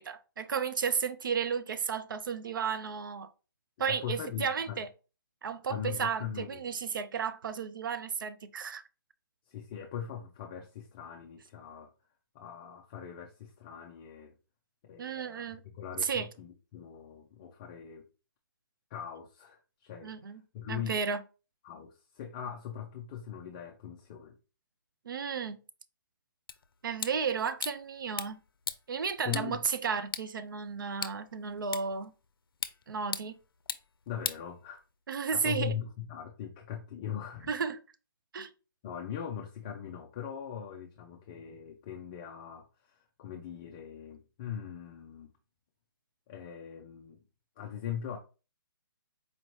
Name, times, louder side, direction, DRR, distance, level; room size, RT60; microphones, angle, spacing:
voice 1, 0.0-3.3 3.8-4.9 5.4-8.8 15.0-15.6 16.0-16.3 20.0-20.4 20.7-21.2 25.1-25.6 26.8-28.4 28.9-32.1 32.9-33.4 35.1-35.7 37.5-37.8 38.3-38.5, right 6 dB, 65° right, 0.5 m, -33 dB
voice 2, 3.9-4.8 5.7-6.6 9.5-11.9 12.3-14.3 14.8-18.1 18.9-21.0 21.6-24.4 29.2-29.6 34.1-34.8 35.3-37.5 38.8-45.3 46.3-47.2 47.6-48.2, left 8 dB, 20° left, 0.4 m, -41 dB
sound 1, 26.5-35.1, left 6 dB, 90° left, 0.5 m, -42 dB
4.3 x 2.8 x 3.1 m
hypercardioid pair, 160°, 12 cm